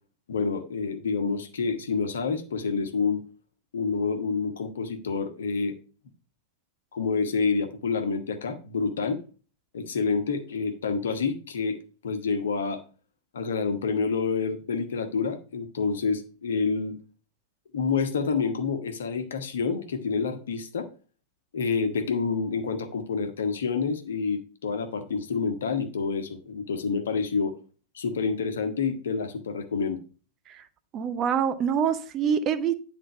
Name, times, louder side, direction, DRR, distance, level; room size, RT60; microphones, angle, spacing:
voice 1, 0.3-3.2 3.7-5.8 6.9-9.2 9.7-11.8 12.0-12.8 13.3-17.0 17.7-20.9 21.5-27.5 27.9-30.0, left 5 dB, 65° left, 8 dB, 1.2 m, -28 dB
voice 2, 30.9-32.7, right 7 dB, 30° right, 10 dB, 0.8 m, -25 dB
10.0 x 3.9 x 5.6 m, 0.37 s
figure-of-eight pair, 90°, 0 cm